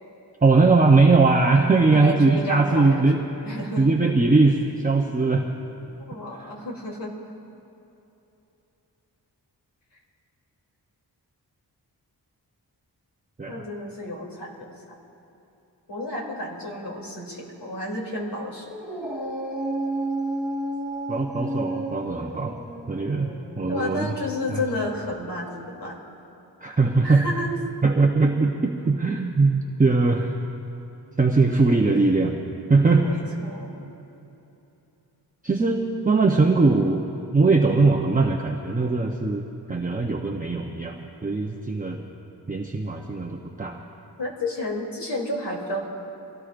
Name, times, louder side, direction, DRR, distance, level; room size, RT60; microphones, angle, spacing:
voice 1, 0.4-3.2 3.8-5.5 6.4-6.5 13.4-13.6 21.1-24.1 24.5-24.6 26.6-27.2 27.8-30.4 31.2-32.4 32.7-33.1 35.4-37.1 37.3-39.4 39.7-42.0 42.5-43.8, right 3 dB, 20° right, 1 dB, 0.7 m, -20 dB
voice 2, 1.9-3.0 3.4-3.8 6.0-7.3 13.5-14.7 15.9-18.7 23.7-26.0 27.0-27.6 33.0-33.8 44.2-45.9, left 1 dB, 85° left, -2 dB, 3.0 m, -31 dB
Dog, 18.6-25.2, right 1 dB, ahead, 3.4 m, -32 dB
25.0 x 17.5 x 2.5 m, 3.0 s
wide cardioid pair, 130°, 41 cm